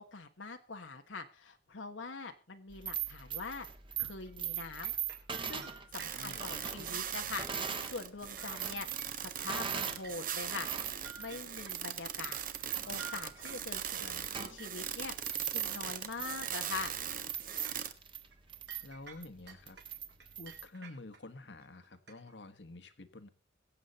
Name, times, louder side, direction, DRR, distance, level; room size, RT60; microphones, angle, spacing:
voice 1, 0.0-3.7 4.0-4.9 5.4-7.5 7.8-8.9 9.2-10.7 11.2-12.4 12.9-14.0 14.4-15.1 15.5-17.0, left 4 dB, 85° left, 1.3 m, -43 dB
sound 1, 2.7-7.9 8.3-10.1 10.4-20.7, right 8 dB, 25° right, 1.6 m, -41 dB
sound 2, 4.3-6.6 7.3-7.4 7.6-7.9 8.1-9.3 9.7-12.0 12.5-14.1 14.6-14.7 15.1-15.4 15.8-15.9 16.4-17.9 18.3-18.4 18.7-21.2 21.6-22.4, right 6 dB, 65° right, 4.4 m, -52 dB
sound 3, 5.9-17.9, right 9 dB, 45° right, 1.2 m, -40 dB
voice 2, 6.0-6.5 14.0-14.5 18.8-19.8 20.4-23.3, left 2 dB, 70° left, 1.5 m, -49 dB
22.5 x 8.4 x 4.2 m
head